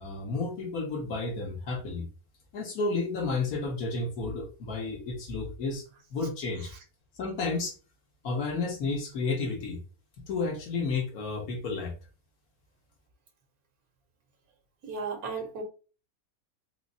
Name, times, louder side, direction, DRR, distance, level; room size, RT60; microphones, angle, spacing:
voice 1, 0.0-2.1 2.5-5.8 6.1-6.7 7.2-7.7 8.2-9.8 10.3-11.9, left 3 dB, 85° left, 1.5 m, -31 dB
voice 2, 14.8-15.6, right 4 dB, 85° right, 1.5 m, -34 dB
3.9 x 3.0 x 2.7 m
omnidirectional pair, 1.5 m